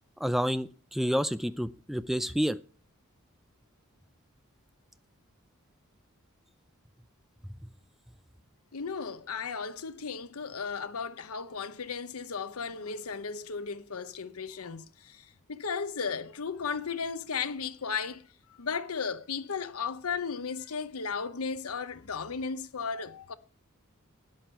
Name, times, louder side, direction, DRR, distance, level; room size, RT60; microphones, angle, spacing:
voice 1, 0.2-2.6 7.6-7.7, equal, ahead, 0.5 m, -29 dB
voice 2, 8.7-18.3 18.6-23.3, left 5 dB, 80° left, 0.9 m, -35 dB
13.0 x 9.4 x 4.5 m
head